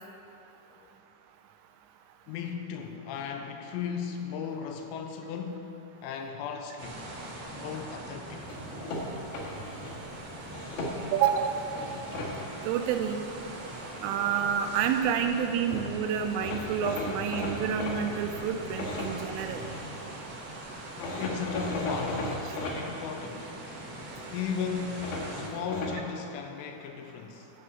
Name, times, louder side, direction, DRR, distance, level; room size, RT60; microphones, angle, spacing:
voice 1, 2.3-7.1 7.6-8.6 15.6-15.7 21.0-23.6 24.3-27.5, left 6 dB, 85° left, 4 dB, 3.1 m, -36 dB
sound 1, 6.8-25.5, right 1 dB, 60° right, 2.6 m, -42 dB
sound 2, 8.5-9.9 10.5-11.3 11.8-12.3 15.4-15.5 15.7-15.9 16.4-19.9 21.0-22.8 25.0-26.0, left 1 dB, 55° left, 2.9 m, -36 dB
voice 2, 11.1-11.6 12.6-13.2 14.0-19.6, right 8 dB, 90° right, 7 dB, 3.2 m, -28 dB
10.5 x 5.9 x 8.0 m, 3.0 s
omnidirectional pair, 5.6 m